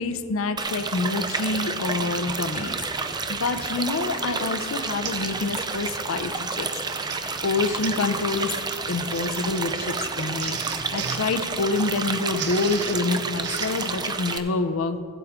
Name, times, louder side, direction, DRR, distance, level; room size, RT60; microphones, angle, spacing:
voice 1, 0.0-2.8 3.3-6.7 6.9-8.6 8.9-10.6 10.9-15.0, left 3 dB, 70° left, 10 dB, 0.5 m, -27 dB
sound 1, 0.6-14.4, right 4 dB, 20° right, 0.5 m, -30 dB
Printer, 3.1-3.4 3.9-4.2 4.4-4.5 5.0-5.3 5.6-5.9 6.7-13.9, right 7 dB, 55° right, 0.7 m, -37 dB
15.0 x 8.2 x 3.6 m, 2.7 s
head